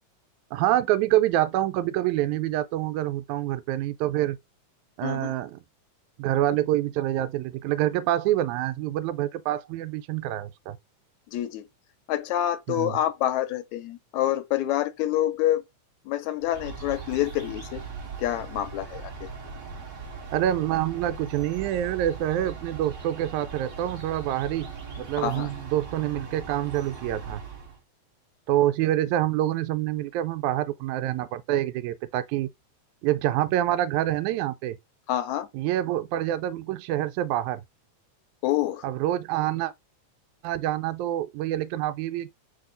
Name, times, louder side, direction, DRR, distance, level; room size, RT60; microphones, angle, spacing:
voice 1, 0.5-4.4 5.0-5.6 6.2-10.8 12.7-13.0 20.3-24.7 25.0-27.4 28.5-32.5 33.0-34.8 35.5-37.6 38.8-39.7 40.4-42.3, right 13 dB, 85° right, 1.9 m, -26 dB
voice 2, 5.0-5.3 11.3-11.7 12.1-15.6 16.1-17.8 18.2-19.3 25.2-25.5 35.1-35.5 38.4-38.8, left 13 dB, 80° left, 1.8 m, -27 dB
sound 1, 16.4-27.8, right 5 dB, 50° right, 0.9 m, -39 dB
4.4 x 2.7 x 3.8 m
omnidirectional pair, 3.4 m